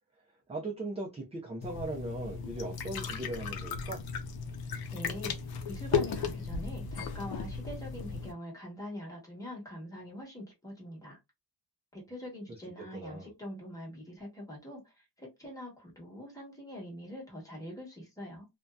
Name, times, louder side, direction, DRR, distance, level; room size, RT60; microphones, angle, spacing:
voice 1, 0.5-4.0 12.9-13.3, right 2 dB, 15° right, 0.4 m, -38 dB
sound 1, 1.6-8.3, left 5 dB, 60° left, 0.6 m, -35 dB
voice 2, 4.9-11.2 11.9-18.5, equal, 10° left, 1.2 m, -44 dB
2.6 x 2.2 x 2.3 m
wide cardioid pair, 155°, 42 cm